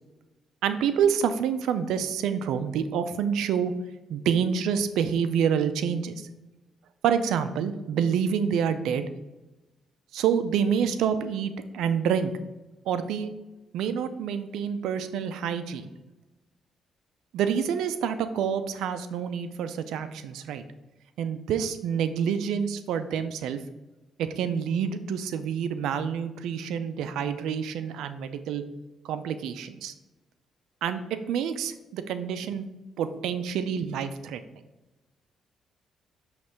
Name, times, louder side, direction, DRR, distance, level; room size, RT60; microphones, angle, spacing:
voice 1, 0.6-3.7 4.1-6.3 7.0-9.1 10.1-12.3 12.9-13.3 13.7-15.9 17.3-20.6 21.2-23.6 24.2-28.6 29.0-29.9 30.8-31.0 31.3-32.6 33.0-34.4, right 7 dB, 85° right, 10 dB, 0.5 m, -27 dB
6.0 x 3.2 x 5.0 m, 1.1 s
cardioid pair, 90°, 0 cm